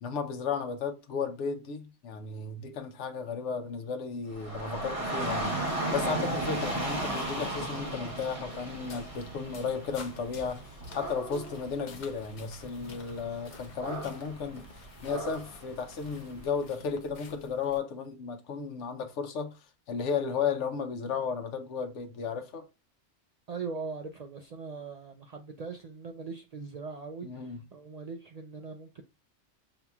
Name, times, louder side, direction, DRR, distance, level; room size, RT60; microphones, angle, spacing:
voice 1, 0.0-10.6 10.9-14.7 15.0-19.6 19.9-22.7 27.2-27.6, left 5 dB, 80° left, 1.0 m, -34 dB
Dog / Rain, 4.3-16.5, right 1 dB, 30° right, 1.1 m, -36 dB
sound 1, 8.5-17.8, left 4 dB, 50° left, 0.7 m, -51 dB
voice 2, 23.5-29.0, right 4 dB, 75° right, 0.3 m, -40 dB
6.8 x 2.8 x 2.3 m
omnidirectional pair, 1.2 m